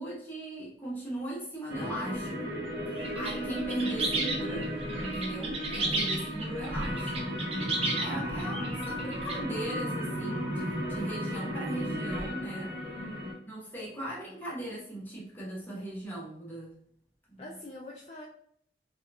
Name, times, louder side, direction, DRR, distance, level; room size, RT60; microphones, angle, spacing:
voice 1, 0.0-2.6 2.9-4.7 5.0-7.4 8.0-12.8 13.4-16.8 17.3-17.5, right 1 dB, 10° left, -6 dB, 0.9 m, -38 dB
sound 1, 1.7-13.3, equal, 50° right, 0.9 m, -35 dB
sound 2, 3.0-9.4, right 2 dB, 35° right, 0.5 m, -33 dB
voice 2, 5.7-6.6 12.7-13.3 17.4-18.3, left 1 dB, 35° left, -2 dB, 0.3 m, -47 dB
2.9 x 2.3 x 2.2 m, 0.65 s
head